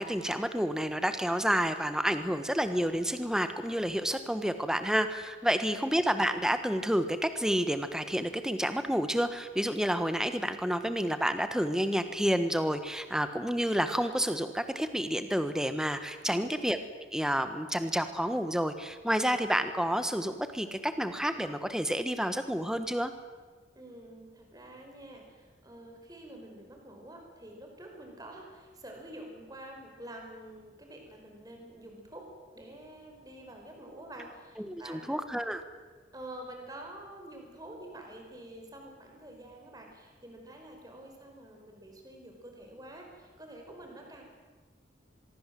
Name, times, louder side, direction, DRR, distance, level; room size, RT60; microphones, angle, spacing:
voice 1, 0.0-16.8 17.1-23.1 34.6-35.6, equal, 5° right, 9 dB, 1.4 m, -29 dB
voice 2, 23.7-32.3 32.5-35.2 36.1-44.2, right 1 dB, 20° right, 2 dB, 5.0 m, -48 dB
25.0 x 22.0 x 7.8 m, 1.4 s
head